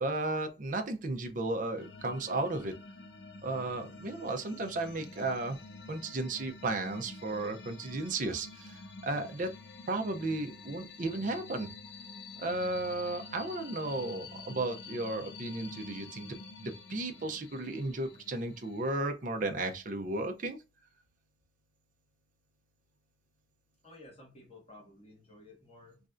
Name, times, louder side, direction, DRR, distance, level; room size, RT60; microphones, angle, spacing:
voice 1, 0.0-2.7 3.4-5.6 5.9-9.5 9.9-11.7 12.4-20.6, right 2 dB, 50° right, 0.6 m, -34 dB
sound 1, 1.8-19.0, left 3 dB, 70° left, 0.5 m, -49 dB
voice 2, 23.8-26.0, left 2 dB, 35° left, 1.3 m, -54 dB
3.2 x 2.6 x 2.4 m
head